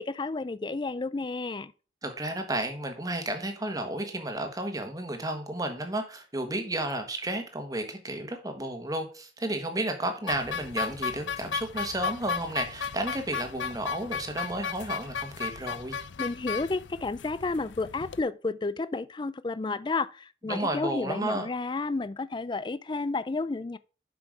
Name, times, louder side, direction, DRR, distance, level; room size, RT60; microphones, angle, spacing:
voice 1, 0.0-1.7 16.2-23.8, left 3 dB, 25° left, 0.4 m, -31 dB
voice 2, 2.0-16.0 20.5-21.5, right 1 dB, 20° right, 1.4 m, -32 dB
sound 1, 10.3-18.2, left 6 dB, 85° left, 0.5 m, -35 dB
7.7 x 5.9 x 4.8 m
head